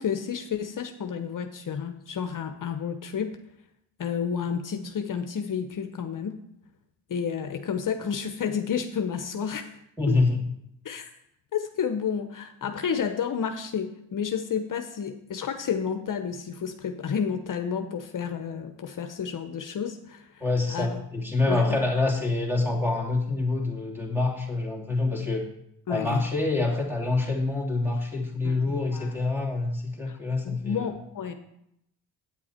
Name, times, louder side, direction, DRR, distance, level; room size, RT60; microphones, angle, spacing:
voice 1, 0.0-3.4 4.0-6.4 7.1-9.8 10.1-10.2 10.8-11.1 11.5-20.4 20.7-21.0 21.5-21.8 25.9-26.2 28.4-29.1 30.1-30.2 30.4-31.3, left 7 dB, 50° left, 7 dB, 0.9 m, -31 dB
voice 2, 10.0-10.4 20.4-25.5 25.9-30.9, left 3 dB, 5° right, -1 dB, 2.9 m, -26 dB
8.9 x 7.3 x 4.4 m, 0.77 s
supercardioid pair, 55°, 41 cm